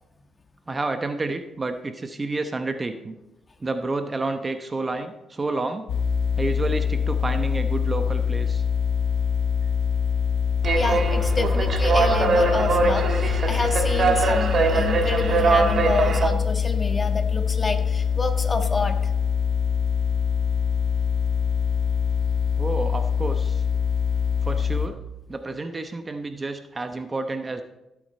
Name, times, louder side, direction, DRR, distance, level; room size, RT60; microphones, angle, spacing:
voice 1, 0.7-3.2 3.6-5.9 6.4-8.6 22.6-23.6 24.4-25.0 25.3-27.6, right 2 dB, 25° right, 8 dB, 0.9 m, -29 dB
sound 1, 5.9-24.9, left 7 dB, 85° left, 1.3 m, -24 dB
sound 2, 10.6-16.3, right 4 dB, 50° right, 1.6 m, -22 dB
voice 2, 10.7-19.0, left 3 dB, 25° left, 5 dB, 1.5 m, -28 dB
15.5 x 8.5 x 4.3 m, 0.95 s
cardioid pair, 90°, 0 cm